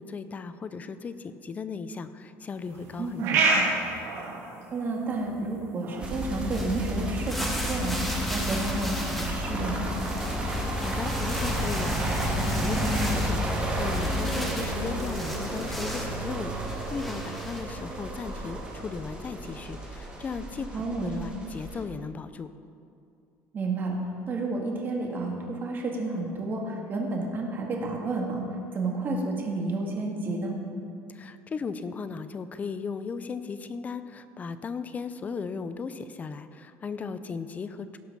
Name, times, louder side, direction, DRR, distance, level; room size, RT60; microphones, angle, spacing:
voice 1, 0.0-3.5 10.6-22.5 31.1-38.0, left 5 dB, 25° left, 12 dB, 0.5 m, -36 dB
sound 1, 2.5-16.6, right 3 dB, 70° right, 2.8 m, -35 dB
voice 2, 3.0-3.3 4.7-10.0 20.7-21.1 23.5-24.0 24.3-28.4 28.7-30.6, right 3 dB, 35° right, 0 dB, 2.0 m, -31 dB
sound 2, 6.0-21.8, equal, 15° right, 2.1 m, -31 dB
sound 3, 6.5-9.5 9.8-16.2 16.6-17.6, equal, 5° left, 1.5 m, -37 dB
17.5 x 6.2 x 5.5 m, 2.5 s
cardioid pair, 140°, 6 cm